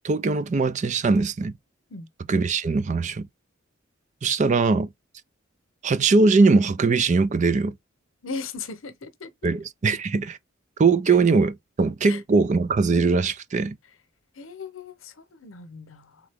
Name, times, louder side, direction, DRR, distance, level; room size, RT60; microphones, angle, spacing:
voice 1, 0.0-1.5 2.3-3.3 4.2-4.9 5.8-7.7 9.4-10.4 10.8-13.7, right 4 dB, 35° right, 0.4 m, -21 dB
voice 2, 8.2-9.3 11.1-11.2 12.0-12.2 14.4-16.2, left 4 dB, 80° left, 0.9 m, -37 dB
3.8 x 3.7 x 3.5 m
head